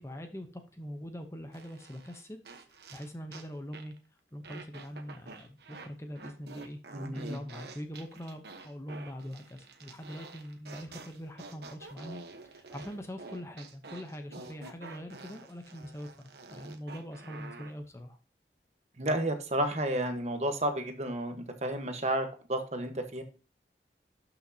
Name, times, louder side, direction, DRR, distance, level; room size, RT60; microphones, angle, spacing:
voice 1, 0.0-2.6 2.9-3.9 4.3-6.8 7.1-18.2, equal, 15° left, 6 dB, 0.8 m, -43 dB
sound 1, 1.5-3.5 3.7-4.0 4.4-5.9 6.1-17.7, right 3 dB, 70° right, 1.1 m, -48 dB
voice 2, 6.9-7.4 19.0-23.2, right 1 dB, 40° right, 6 dB, 1.2 m, -32 dB
12.0 x 5.9 x 2.8 m, 0.36 s
head